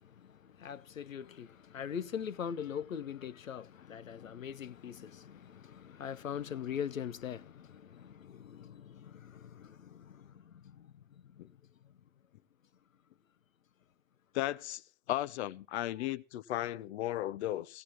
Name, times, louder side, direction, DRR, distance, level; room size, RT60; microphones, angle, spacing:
voice 1, 0.0-11.5, left 8 dB, 85° left, 0.8 m, -42 dB
voice 2, 14.3-14.8 15.1-17.8, left 14 dB, 55° left, 0.8 m, -35 dB
18.5 x 16.0 x 3.0 m
hypercardioid pair, 105°, 39 cm